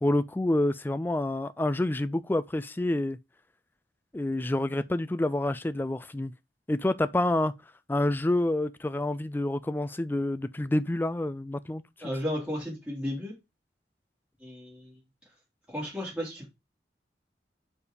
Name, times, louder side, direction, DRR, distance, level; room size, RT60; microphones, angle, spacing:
voice 1, 0.0-3.2 4.1-6.3 6.7-7.5 7.9-12.1, left 1 dB, 10° left, 0.3 m, -28 dB
voice 2, 12.0-13.3 14.4-15.0 15.7-16.5, equal, 5° right, 2.5 m, -34 dB
4.9 x 4.8 x 4.9 m
head